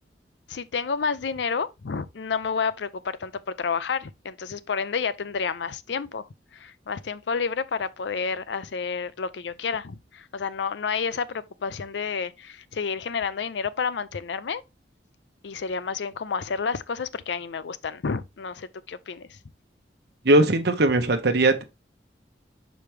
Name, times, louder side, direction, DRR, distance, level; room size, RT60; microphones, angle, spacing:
voice 1, 0.5-6.3 6.5-14.6 15.4-19.4, left 5 dB, 75° left, 0.5 m, -30 dB
voice 2, 20.2-21.6, right 2 dB, 65° right, 1.0 m, -19 dB
5.9 x 5.0 x 3.3 m
head